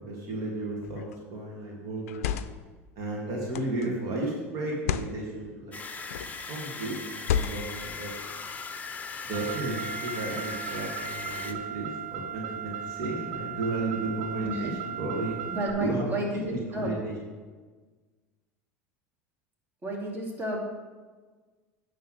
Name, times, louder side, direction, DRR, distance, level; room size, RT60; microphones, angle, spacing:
voice 1, 0.0-2.3 3.0-5.8 6.5-7.0 7.4-8.1 9.3-15.4 15.8-16.0 16.5-17.1, right 2 dB, 55° right, -2 dB, 1.9 m, -33 dB
sound 1, 0.8-1.1 2.0-2.7 3.5-3.9 4.7-5.1 6.0-6.4 7.2-7.8, left 9 dB, 80° left, 0.4 m, -31 dB
sound 2, 5.7-11.5, left 4 dB, 20° left, 0.8 m, -39 dB
Car, 9.3-15.7, right 9 dB, 75° right, 0.7 m, -37 dB
voice 2, 14.4-14.7 15.5-16.9 19.8-20.6, right 1 dB, 25° right, -2 dB, 2.3 m, -31 dB
9.5 x 3.5 x 6.3 m, 1.4 s
hypercardioid pair, 90°, 7 cm